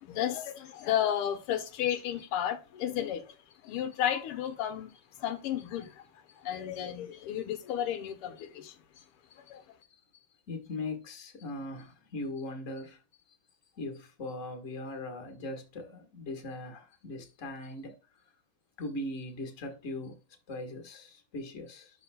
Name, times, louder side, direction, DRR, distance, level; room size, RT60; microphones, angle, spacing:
voice 1, 0.0-3.4 3.6-8.8 9.4-9.8, left 10 dB, 85° left, 1.8 m, -33 dB
voice 2, 1.5-1.9 2.2-2.4 7.1-7.2 9.0-9.1 10.5-13.0 13.8-17.9 18.8-20.2 20.5-21.9, left 2 dB, 40° left, 1.7 m, -40 dB
12.0 x 4.3 x 2.2 m
omnidirectional pair, 2.4 m